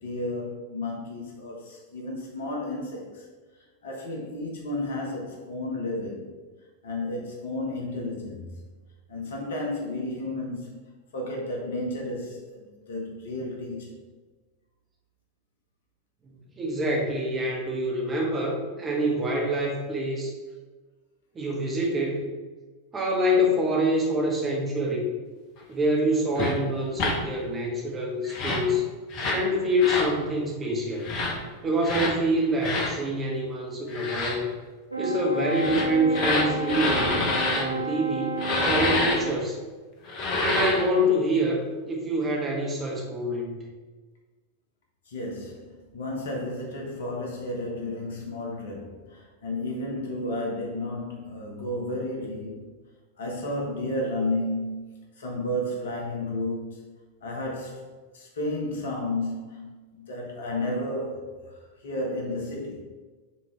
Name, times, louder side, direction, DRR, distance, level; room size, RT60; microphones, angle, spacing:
voice 1, 0.0-3.2 3.8-6.3 6.8-8.5 9.1-10.7 11.1-13.9 45.1-52.7 53.2-56.9 57.2-57.8 58.1-61.5 61.8-62.8, left 1 dB, 60° left, -1 dB, 1.4 m, -32 dB
voice 2, 16.6-20.3 21.3-22.3 22.9-25.1 25.7-28.8 29.3-31.1 31.6-34.5 35.0-37.2 37.6-39.6 40.4-43.6, equal, 20° right, -2 dB, 1.6 m, -26 dB
sound 1, 26.4-26.5 27.0-27.2 28.2-28.7 29.1-29.4 29.8-30.1 31.0-31.3 31.8-32.1 32.6-32.9 33.9-34.4 35.5-37.6 38.4-39.2 40.1-40.9, left 2 dB, 40° left, 1.2 m, -27 dB
Brass instrument, 34.9-39.3, right 2 dB, 85° left, 0.6 m, -32 dB
6.1 x 3.8 x 4.6 m, 1.3 s
figure-of-eight pair, 90°, 0 cm